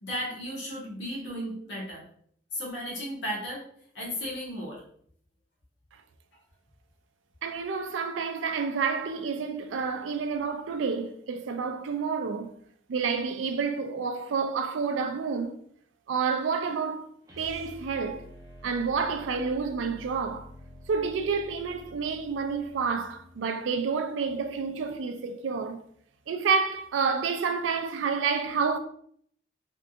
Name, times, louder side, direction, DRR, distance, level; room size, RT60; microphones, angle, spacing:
voice 1, 0.0-2.0 2.5-3.7 3.9-4.8, equal, 75° left, 1.2 m, -35 dB
voice 2, 7.4-12.5 12.9-15.6 16.1-17.1 17.4-18.2 18.6-20.5 20.9-25.8 26.3-28.8, right 5 dB, 85° right, 0.4 m, -29 dB
sound 1, 17.2-23.4, equal, 20° right, 0.7 m, -48 dB
3.4 x 2.7 x 2.4 m
head